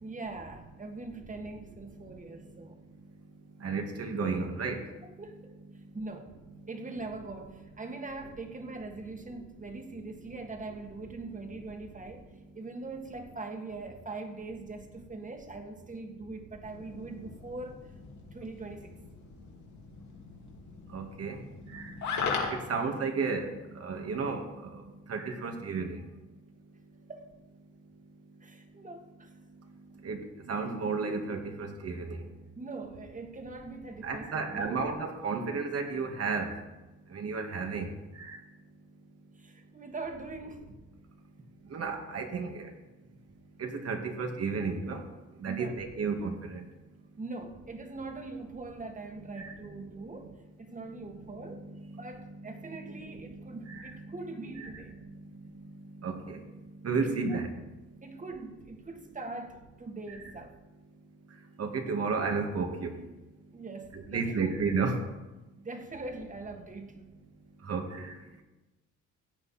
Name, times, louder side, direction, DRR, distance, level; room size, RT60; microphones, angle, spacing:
voice 1, 0.0-2.8 5.2-5.5 5.9-6.4 6.7-12.3 12.6-17.8 18.3-18.9 27.1-27.3 28.4-29.3 32.6-34.8 39.4-40.8 45.5-45.8 47.2-51.7 52.0-54.9 57.0-57.4 58.0-60.5 63.5-64.6 65.6-67.1, right 3 dB, 25° right, 5 dB, 1.8 m, -42 dB
voice 2, 3.6-4.9 20.9-24.8 25.1-26.0 30.0-30.2 30.5-32.2 34.0-36.5 37.1-37.9 38.2-38.4 41.7-42.7 43.6-45.0 45.4-46.6 49.3-49.5 51.2-54.2 54.6-55.2 55.6-57.6 61.6-63.0 63.9-65.0 67.7-68.2, right 4 dB, 55° right, 4 dB, 2.1 m, -33 dB
sound 1, 16.6-22.7, left 5 dB, 70° left, 2.5 m, -39 dB
16.0 x 8.4 x 4.3 m, 1.1 s
cardioid pair, 90°, 30 cm